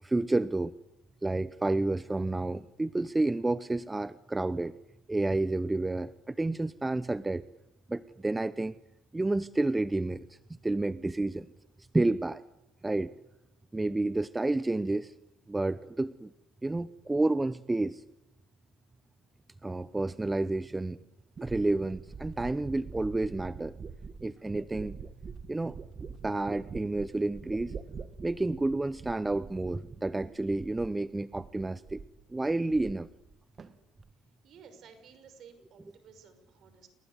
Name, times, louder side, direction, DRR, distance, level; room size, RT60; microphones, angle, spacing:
voice 1, 0.0-0.7 1.2-4.7 5.1-7.4 7.9-8.7 9.1-10.4 10.6-11.5 11.9-12.4 12.8-13.1 13.7-15.1 15.5-16.3 16.6-18.0 19.6-21.0 21.4-23.7 24.2-25.0 25.5-25.8 26.2-27.7 28.2-32.0 32.3-33.1, right 2 dB, 15° right, 16 dB, 0.8 m, -30 dB
sound 1, 20.6-20.7 21.4-31.1 31.3-32.2 32.5-33.3 33.6-34.1, right 5 dB, 35° right, 2.0 m, -45 dB
voice 2, 34.4-36.9, right 6 dB, 55° right, 9 dB, 5.8 m, -54 dB
28.5 x 20.5 x 8.3 m, 0.94 s
hypercardioid pair, 75°, 0 cm